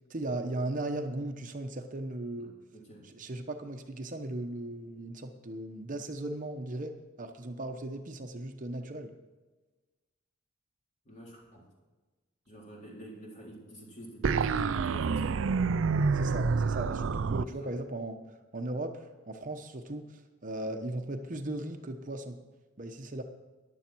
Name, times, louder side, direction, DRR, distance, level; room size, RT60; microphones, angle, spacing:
voice 1, 0.1-2.5 3.1-9.1 16.1-18.2 18.5-22.4 22.8-23.2, right 1 dB, 40° right, 6 dB, 0.9 m, -37 dB
voice 2, 2.4-3.1 11.0-11.6 12.5-15.5 17.5-17.7, right 1 dB, 40° left, -3 dB, 4.1 m, -49 dB
sound 1, 14.2-17.4, right 5 dB, 80° right, 0.5 m, -28 dB
14.5 x 11.0 x 4.6 m, 1.3 s
head